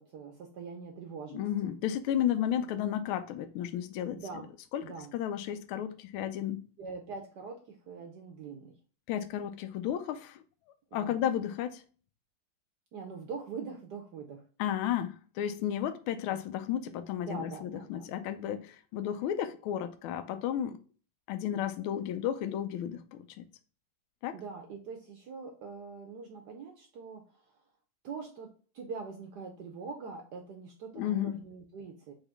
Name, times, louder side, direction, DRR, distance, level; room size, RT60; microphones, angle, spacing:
voice 1, 0.0-1.4 4.1-4.5 4.8-5.1 6.8-8.8 10.9-11.2 12.9-14.4 16.3-16.4 17.2-18.1 24.3-27.6 28.0-32.1, right 5 dB, 70° right, 1.0 m, -43 dB
voice 2, 1.3-4.2 4.7-4.8 5.1-6.6 9.1-10.4 10.9-11.8 14.6-20.8 21.3-23.4 24.2-24.4 30.9-31.4, left 10 dB, 80° left, 1.4 m, -33 dB
4.0 x 3.6 x 3.4 m
omnidirectional pair, 2.4 m